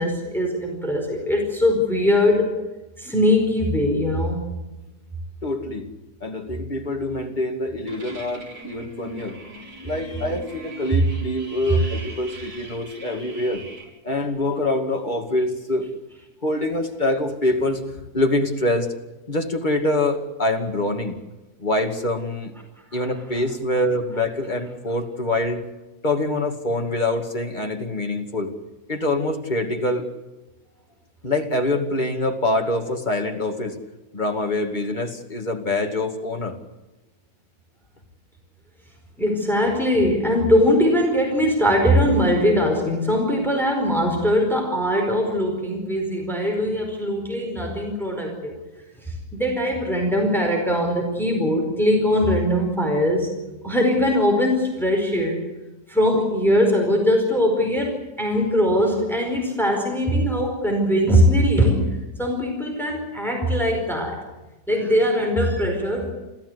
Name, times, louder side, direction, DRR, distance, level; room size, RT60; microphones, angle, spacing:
voice 1, 0.0-2.4 3.0-4.4 22.9-23.1 39.2-48.6 49.0-53.3 53.6-55.4 55.9-61.9 62.2-64.2 64.7-66.1, equal, ahead, 1 dB, 4.8 m, -21 dB
voice 2, 5.4-5.9 6.2-9.4 9.8-13.6 14.0-15.9 16.4-18.9 19.3-21.2 21.6-22.5 22.9-25.6 26.0-28.5 28.9-30.1 31.2-33.8 34.1-36.6, left 1 dB, 25° left, 3 dB, 2.4 m, -25 dB
sound 1, 7.9-13.9, right 2 dB, 80° right, 4.8 m, -39 dB
28.0 x 15.0 x 8.2 m, 1.1 s
omnidirectional pair, 1.8 m